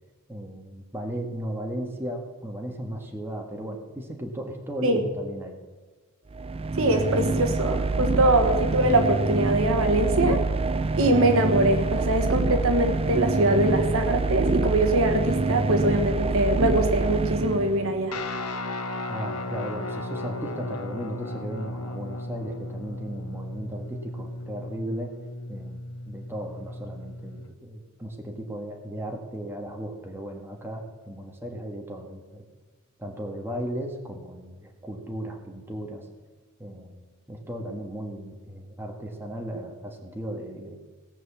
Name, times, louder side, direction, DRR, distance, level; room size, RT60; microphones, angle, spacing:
voice 1, 0.3-5.6 19.1-25.1 25.5-32.4 33.0-36.0 36.6-37.0 37.3-40.8, right 1 dB, 10° right, 1 dB, 1.7 m, -36 dB
sound 1, 6.3-18.1, right 3 dB, 25° right, 0.5 m, -26 dB
voice 2, 6.8-10.4 11.0-18.2, right 1 dB, 65° right, 5 dB, 1.5 m, -23 dB
Guitar, 18.1-27.5, left 2 dB, 85° left, 1.0 m, -35 dB
18.0 x 6.2 x 7.3 m, 1.3 s
head